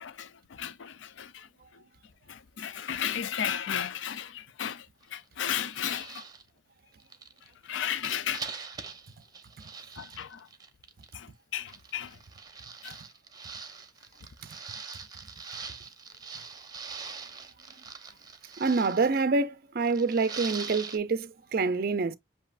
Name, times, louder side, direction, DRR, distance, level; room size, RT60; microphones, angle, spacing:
voice 1, 0.0-1.8 2.3-6.3 7.4-8.5 10.0-10.5 11.1-12.2 12.8-13.0, left 9 dB, 75° left, 0.5 m, -35 dB
sound 1, 5.0-5.2 5.5-6.4 7.0-11.1 11.7-19.2 19.8-21.0, right 5 dB, 20° right, 0.8 m, -43 dB
voice 2, 18.6-22.2, right 4 dB, 50° right, 0.4 m, -26 dB
7.4 x 2.8 x 2.4 m
head